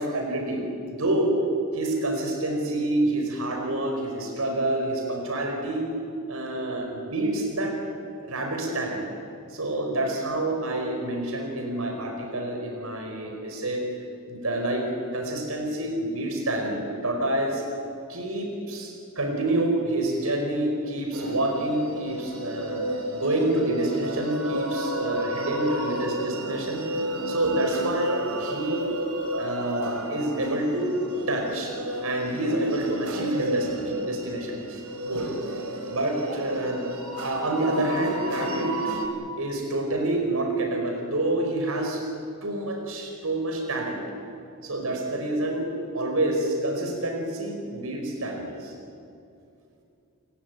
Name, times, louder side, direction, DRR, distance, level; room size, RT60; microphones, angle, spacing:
voice 1, 0.0-1.4 1.7-5.9 6.3-7.8 8.2-9.0 9.5-13.8 14.3-14.8 15.1-17.6 18.1-22.8 23.1-26.8 27.3-28.9 29.4-30.9 31.3-31.7 32.0-35.3 35.9-36.8 37.2-38.7 39.4-42.0 42.4-44.0 44.6-48.7, right 1 dB, 70° right, 2 dB, 5.1 m, -28 dB
sound 1, 21.1-39.1, right 1 dB, 85° right, 4.1 m, -32 dB
30.0 x 17.0 x 9.6 m, 2.5 s
head